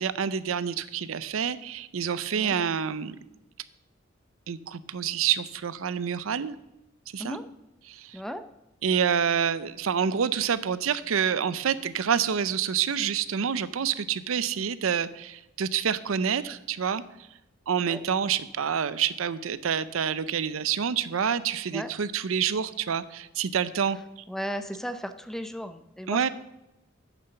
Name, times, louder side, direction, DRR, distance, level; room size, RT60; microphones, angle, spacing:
voice 1, 0.0-3.2 4.5-6.6 7.1-7.4 7.9-8.2 8.8-17.0 17.7-24.0 26.1-26.3, right 7 dB, 85° right, 16 dB, 0.5 m, -27 dB
voice 2, 24.3-26.3, equal, ahead, 9 dB, 0.5 m, -35 dB
9.2 x 6.9 x 6.7 m, 0.91 s
head